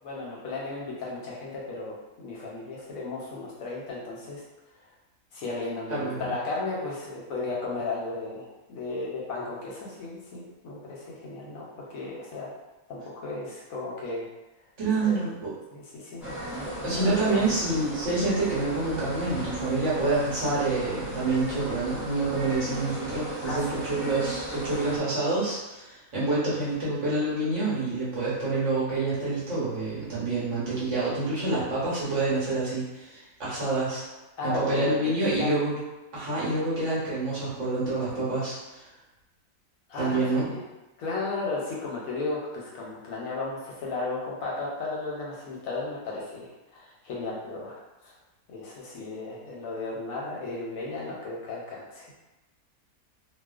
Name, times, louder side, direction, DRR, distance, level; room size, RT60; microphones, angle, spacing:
voice 1, 0.0-4.4 5.3-12.5 12.9-14.3 15.0-15.1 15.7-17.5 23.4-23.8 34.4-35.5 39.9-40.6 41.0-48.1 48.5-52.1, left 3 dB, 70° left, -4 dB, 1.0 m, -35 dB
voice 2, 5.9-6.3 14.8-15.5 16.8-34.0 34.4-35.8 36.1-38.9 40.0-40.5, right 2 dB, 55° right, -8 dB, 1.1 m, -27 dB
sound 1, 16.2-25.0, equal, ahead, 0.7 m, -36 dB
2.4 x 2.3 x 2.3 m, 1.0 s
omnidirectional pair, 1.6 m